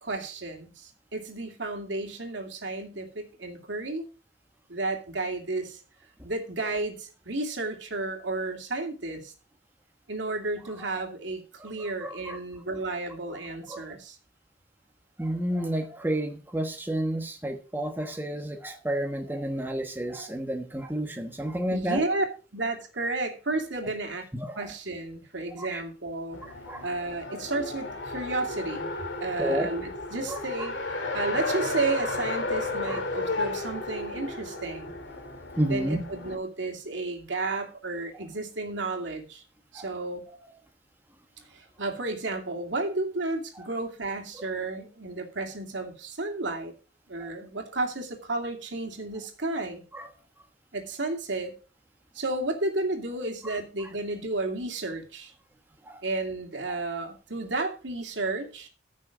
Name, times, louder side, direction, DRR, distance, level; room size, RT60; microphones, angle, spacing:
voice 1, 0.0-4.0 4.7-5.8 6.2-9.3 10.1-14.2 21.7-22.2 22.5-24.2 24.6-26.4 26.8-28.9 29.2-30.7 31.1-35.0 35.7-39.4 39.7-40.2 41.5-46.7 47.1-49.8 50.7-51.5 52.1-55.3 56.0-58.7, right 2 dB, 80° right, 3 dB, 2.5 m, -32 dB
voice 2, 11.6-12.4 13.7-13.9 15.2-22.0 24.3-24.6 25.6-25.8 26.4-26.8 29.2-29.7 30.3-30.7 32.9-33.0 35.6-36.0 39.7-39.9 47.2-47.3 49.9-50.1 53.4-53.6 55.8-56.0, right 1 dB, 10° right, 4 dB, 1.1 m, -31 dB
Race car auto racing, 26.3-36.4, left 2 dB, 80° left, 2.5 m, -33 dB
14.5 x 6.4 x 5.0 m, 0.35 s
head